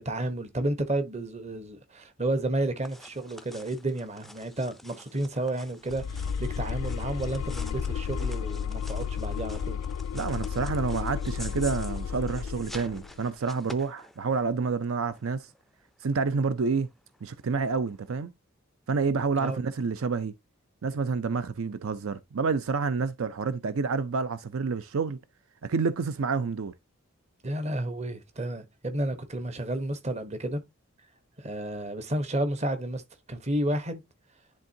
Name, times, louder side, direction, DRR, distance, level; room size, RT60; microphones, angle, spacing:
voice 1, 0.0-9.8 19.4-19.6 27.4-30.6 31.4-33.0 33.3-34.0, right 1 dB, 30° right, 1.0 m, -31 dB
sound 1, 2.8-18.2, left 1 dB, ahead, 0.4 m, -49 dB
sound 2, 5.9-13.1, left 7 dB, 80° left, 0.3 m, -32 dB
voice 2, 10.1-15.5 16.0-16.9 17.2-18.3 18.9-20.3 20.8-25.2 25.6-26.7, right 4 dB, 70° right, 0.5 m, -28 dB
10.5 x 3.5 x 2.7 m
head